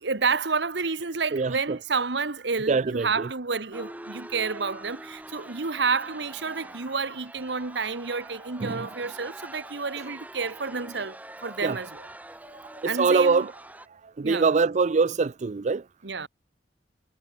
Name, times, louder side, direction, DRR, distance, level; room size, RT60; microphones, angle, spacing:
voice 1, 0.0-12.1 12.8-13.5 14.2-14.5 16.0-16.3, right 4 dB, 70° right, 1.3 m, -30 dB
voice 2, 1.3-1.8 2.7-3.3 8.6-8.9 11.6-11.8 12.5-13.5 14.2-15.8, right 4 dB, 40° right, 0.4 m, -24 dB
sound 1, 3.7-13.9, right 1 dB, 10° right, 2.0 m, -44 dB
head